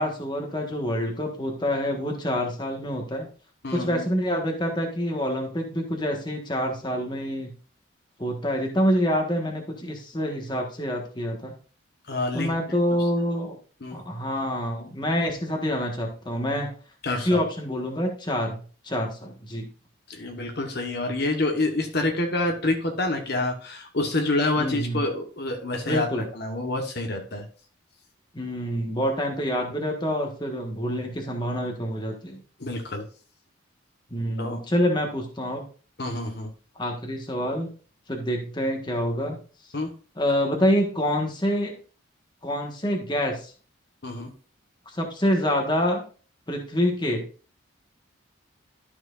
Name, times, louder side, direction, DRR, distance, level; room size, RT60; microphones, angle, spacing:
voice 1, 0.0-3.3 3.7-7.5 8.2-11.5 12.3-13.6 13.9-16.7 17.2-18.6 18.8-19.7 24.6-25.0 25.9-26.2 28.3-32.4 34.1-35.7 36.7-37.7 38.1-39.4 40.2-41.7 42.4-43.5 44.8-46.0 46.5-47.2, equal, 20° left, 2 dB, 1.5 m, -26 dB
voice 2, 3.6-4.1 12.1-12.5 13.8-14.0 17.0-17.4 20.1-26.1 26.3-27.5 32.6-33.1 34.4-34.6 36.0-36.5 39.7-39.9 44.0-44.3, left 2 dB, 50° left, 3 dB, 1.2 m, -27 dB
12.5 x 6.0 x 2.5 m, 0.39 s
head